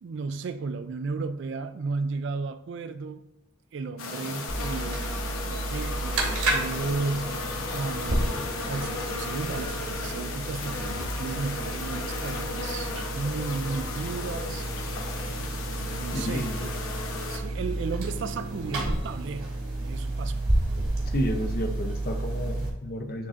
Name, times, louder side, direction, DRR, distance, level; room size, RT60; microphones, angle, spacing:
voice 1, 0.0-3.2 3.7-5.2 5.4-7.4 7.7-14.7 15.8-16.7 17.1-20.4, right 4 dB, 55° right, 0.3 m, -34 dB
sound 1, 4.0-17.4, left 3 dB, 80° left, 1.0 m, -35 dB
sound 2, 4.5-22.7, right 2 dB, 75° right, 1.9 m, -31 dB
voice 2, 16.1-16.6 21.1-23.3, equal, 45° left, 0.6 m, -31 dB
10.5 x 3.7 x 2.5 m
head